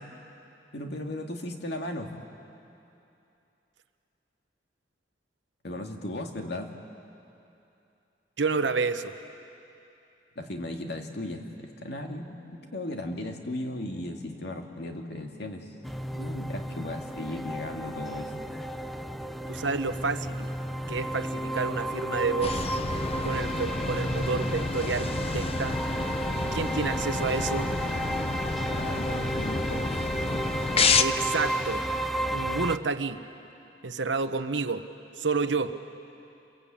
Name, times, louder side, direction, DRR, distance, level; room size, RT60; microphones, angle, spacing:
voice 1, 0.7-2.1 5.6-6.7 10.4-12.4 12.7-15.7 16.2-18.3 28.6-30.1, left 1 dB, 65° left, 3 dB, 2.3 m, -36 dB
voice 2, 8.4-9.2 19.5-20.5 20.9-22.6 23.2-25.8 26.5-27.8 31.0-31.8 32.3-33.2 33.8-34.9 35.2-35.7, right 4 dB, 80° right, 10 dB, 1.0 m, -29 dB
sound 1, 12.2-26.3, left 2 dB, 25° right, 2.0 m, -57 dB
sound 2, 15.8-32.8, right 1 dB, ahead, 0.6 m, -33 dB
sound 3, 22.4-31.0, left 4 dB, 35° left, 0.8 m, -30 dB
29.0 x 22.0 x 8.8 m, 2.8 s
head